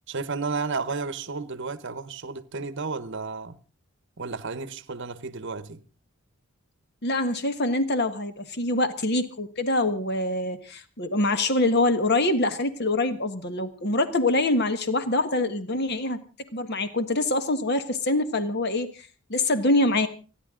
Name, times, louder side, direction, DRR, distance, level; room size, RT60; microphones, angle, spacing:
voice 1, 0.1-3.6 4.2-5.9, right 4 dB, 55° right, 0.9 m, -32 dB
voice 2, 7.0-16.2 16.5-18.9 19.3-20.1, left 2 dB, 45° left, 1.4 m, -24 dB
30.0 x 10.5 x 3.8 m
head